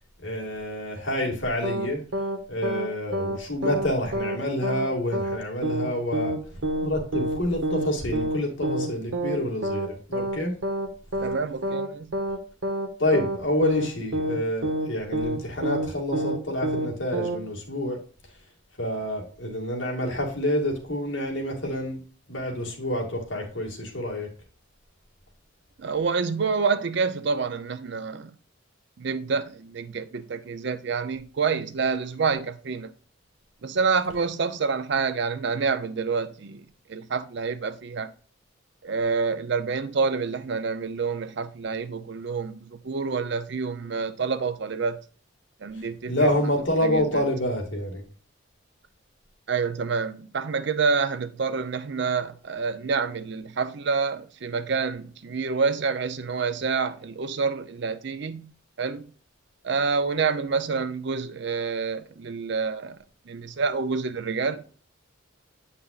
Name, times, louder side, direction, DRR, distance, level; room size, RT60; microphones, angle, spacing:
voice 1, 0.2-2.0 2.5-6.4 6.8-10.5 13.0-18.0 18.8-22.0 22.3-24.3 46.1-48.1, left 1 dB, 65° left, 2.0 m, -28 dB
sound 1, 1.6-1.9 2.1-2.4 2.6-2.9 3.1-3.4 3.6-4.4 4.6-4.9 5.1-5.4 5.6-5.9 6.1-6.4 6.6-6.9 7.1-7.4 7.6-8.4 8.6-8.9 9.1-9.4 9.6-9.9 10.1-10.4 10.6-10.9 11.1-11.4 11.6-11.9 12.1-12.4 12.6-12.9 13.1-13.4 13.6-13.9 14.1-14.4 14.6-14.9 15.1-15.4 15.6-15.9 16.1-16.4 16.6-16.9 17.1-17.4, right 1 dB, 75° right, 1.0 m, -27 dB
voice 2, 11.2-12.1 25.8-28.4 29.0-32.9 33.6-38.1 38.8-45.0 45.6-46.3 46.8-47.3 49.5-58.5 58.8-59.1 59.6-64.6, right 5 dB, 55° right, 0.5 m, -28 dB
8.2 x 5.7 x 2.4 m
head